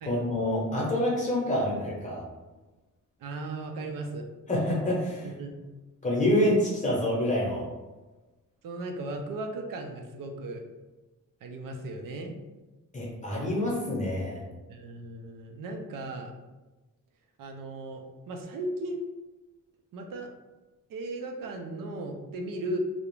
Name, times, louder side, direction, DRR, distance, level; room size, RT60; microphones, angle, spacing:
voice 1, 0.1-2.2 4.5-5.3 6.0-7.7 12.9-14.4, left 1 dB, 25° left, -5 dB, 0.7 m, -27 dB
voice 2, 3.2-4.3 5.2-5.7 8.6-10.6 11.4-12.3 14.7-16.3 17.4-19.1 19.9-20.3 20.9-22.8, right 2 dB, 80° right, 3 dB, 0.5 m, -36 dB
2.3 x 2.1 x 3.0 m, 1.1 s
wide cardioid pair, 155°, 32 cm